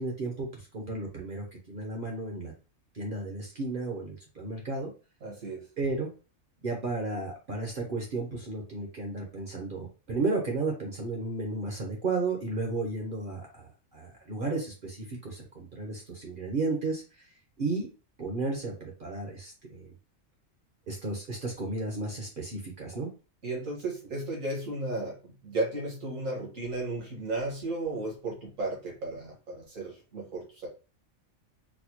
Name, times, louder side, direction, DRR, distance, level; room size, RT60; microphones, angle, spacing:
voice 1, 0.0-2.5 2.9-4.9 5.8-6.1 6.6-17.3 17.6-17.9 18.2-19.9 20.9-23.1, right 3 dB, 45° right, 0 dB, 0.8 m, -33 dB
voice 2, 5.2-5.7 23.4-30.7, right 2 dB, 75° right, -2 dB, 1.8 m, -34 dB
4.1 x 2.1 x 2.9 m, 0.33 s
omnidirectional pair, 1.4 m